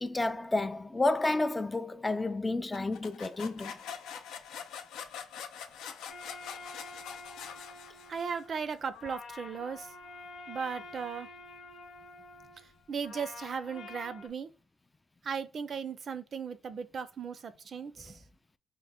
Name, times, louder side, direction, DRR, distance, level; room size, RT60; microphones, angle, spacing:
voice 1, 0.0-3.7, left 2 dB, 20° left, 0.3 m, -30 dB
sound 1, 2.7-8.4, left 7 dB, 85° left, 0.5 m, -44 dB
sound 2, 6.1-14.3, left 3 dB, 65° left, 0.8 m, -48 dB
voice 2, 8.1-9.9 10.5-11.3 12.9-14.5 15.2-18.2, right 6 dB, 50° right, 0.4 m, -37 dB
4.4 x 2.1 x 3.5 m
cardioid pair, 90°, 0 cm